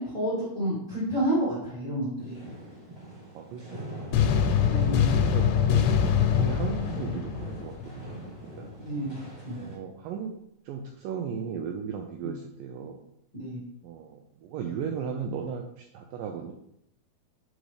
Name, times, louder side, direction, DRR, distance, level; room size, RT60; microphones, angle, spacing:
voice 1, 0.0-2.4 4.6-5.0 8.8-9.1 9.4-9.6 13.4-13.6, right 1 dB, 15° left, -11 dB, 1.5 m, -29 dB
sound 1, 2.2-9.8, right 1 dB, 65° right, 0.4 m, -43 dB
voice 2, 3.3-4.6 5.2-5.9 6.4-8.7 9.6-10.3 10.7-13.1 13.8-16.5, right 7 dB, 90° right, 3 dB, 1.9 m, -36 dB
sound 2, 4.1-8.1, left 7 dB, 85° left, 2.6 m, -24 dB
6.2 x 5.2 x 3.3 m, 0.77 s
omnidirectional pair, 4.5 m